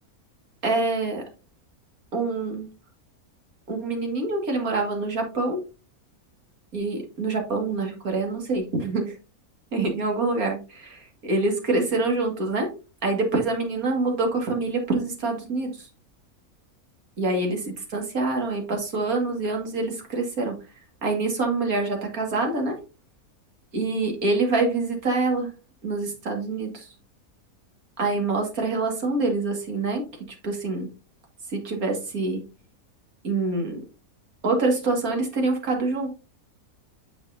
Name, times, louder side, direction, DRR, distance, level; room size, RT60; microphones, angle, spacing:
voice 1, 0.6-1.2 2.1-2.7 3.7-5.6 6.7-9.1 9.7-12.7 13.0-15.9 17.2-20.5 21.0-22.8 23.7-25.5 25.8-26.9 28.0-30.0 30.4-30.9 31.5-32.4 33.2-33.8 34.4-36.1, right 3 dB, 70° right, 2 dB, 2.4 m, -26 dB
9.0 x 6.4 x 2.6 m, 0.31 s
omnidirectional pair, 1.6 m